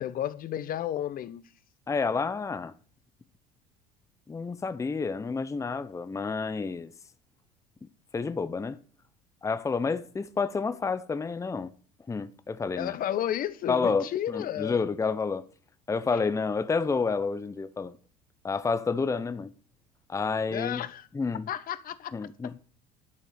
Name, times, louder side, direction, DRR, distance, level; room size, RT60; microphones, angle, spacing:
voice 1, 0.0-1.4 12.8-14.8 20.5-21.1 21.5-22.1, left 11 dB, 45° left, 1.2 m, -32 dB
voice 2, 1.9-2.7 4.3-6.9 8.1-8.8 9.4-11.7 12.1-13.0 13.7-15.5 15.9-18.0 18.4-19.5 20.1-20.8 21.1-21.5 22.1-22.5, left 4 dB, 15° left, 0.8 m, -29 dB
11.5 x 6.9 x 6.7 m
hypercardioid pair, 75°, 20 cm